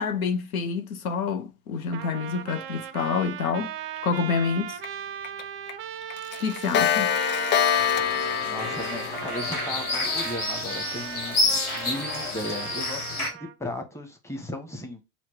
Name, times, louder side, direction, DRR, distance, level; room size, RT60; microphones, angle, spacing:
voice 1, 0.0-3.7 4.0-4.8 6.4-7.2, left 5 dB, 75° left, 0.7 m, -27 dB
Trumpet, 1.9-13.5, right 10 dB, 30° right, 0.4 m, -37 dB
Clock, 4.8-4.9 5.2-5.4 5.7-5.8 6.1-10.1, left 9 dB, 25° left, 0.4 m, -26 dB
sound 1, 7.7-13.3, left 3 dB, 90° left, 1.1 m, -30 dB
voice 2, 8.4-15.0, left 1 dB, 5° left, 1.1 m, -36 dB
4.3 x 2.3 x 4.5 m
figure-of-eight pair, 75°, 43 cm